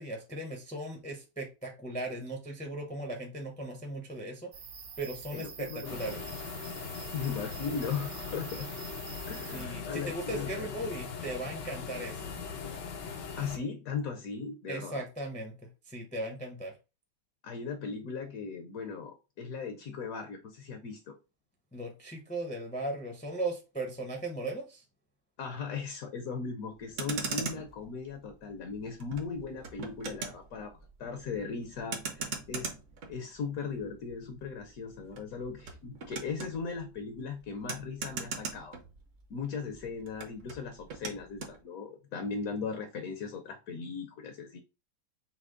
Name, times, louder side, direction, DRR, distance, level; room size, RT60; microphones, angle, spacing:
voice 1, 0.0-4.5 5.0-6.2 9.5-12.3 14.7-15.5 15.9-16.7 21.7-24.8, right 1 dB, 10° left, 0.5 m, -37 dB
sound 1, 4.5-9.6, right 6 dB, 85° right, 0.5 m, -46 dB
voice 2, 5.3-6.0 7.1-8.7 9.3-10.7 13.3-15.0 17.4-21.2 25.4-32.7 33.1-38.8 39.3-44.6, left 5 dB, 60° left, 1.1 m, -38 dB
sound 2, 5.8-13.6, left 5 dB, 85° left, 1.5 m, -40 dB
Motor vehicle (road), 26.8-39.4 39.7-41.6, right 4 dB, 55° right, 1.0 m, -41 dB
5.9 x 2.1 x 3.7 m
omnidirectional pair, 1.9 m